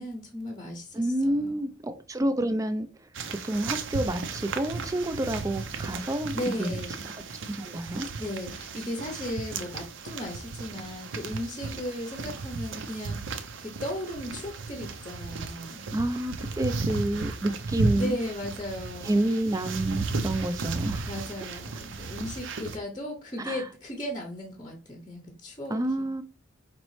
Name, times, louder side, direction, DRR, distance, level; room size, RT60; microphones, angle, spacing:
voice 1, 0.0-1.7 6.3-7.0 8.2-13.2 13.6-15.8 18.0-19.3 21.1-26.1, left 1 dB, 20° left, 0.8 m, -36 dB
voice 2, 0.9-2.9 3.3-6.7 7.5-8.1 15.9-18.2 19.0-21.1 23.4-23.6 25.7-26.2, right 1 dB, 15° right, 0.4 m, -29 dB
sound 1, 3.1-22.8, right 4 dB, 70° right, 0.6 m, -35 dB
5.2 x 3.0 x 3.1 m
head